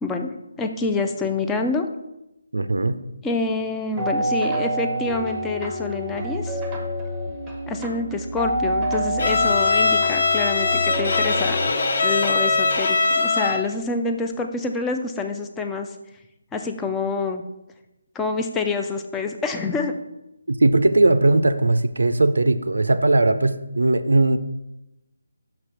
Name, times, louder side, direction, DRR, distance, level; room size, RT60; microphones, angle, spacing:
voice 1, 0.0-1.9 3.2-6.6 7.7-11.6 12.0-15.9 16.5-17.4 18.1-19.9, left 3 dB, 10° left, 4 dB, 0.4 m, -27 dB
voice 2, 2.5-3.0 20.5-24.4, right 2 dB, 85° right, 12 dB, 0.4 m, -19 dB
sound 1, 4.0-12.8, right 1 dB, 10° right, 0.8 m, -28 dB
Bowed string instrument, 9.2-13.8, left 4 dB, 55° left, 0.6 m, -21 dB
6.0 x 3.2 x 5.7 m, 0.92 s
figure-of-eight pair, 160°, 0 cm